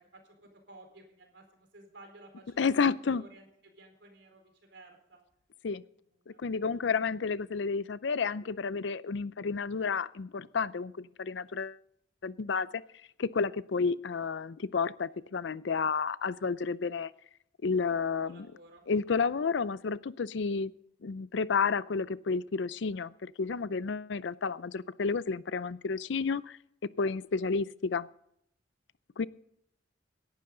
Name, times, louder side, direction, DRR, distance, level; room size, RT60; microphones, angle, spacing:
voice 1, 0.0-2.7 3.1-5.2 6.1-6.8 18.2-18.8 27.0-27.1, right 2 dB, 70° right, 4 dB, 4.3 m, -55 dB
voice 2, 2.6-3.2 5.6-5.8 6.4-11.8 12.2-12.8 13.2-17.1 17.6-18.5 18.9-20.7 21.0-26.6 27.0-28.1 29.2-29.3, left 5 dB, 70° left, 18 dB, 0.5 m, -31 dB
18.0 x 11.5 x 3.8 m, 0.73 s
head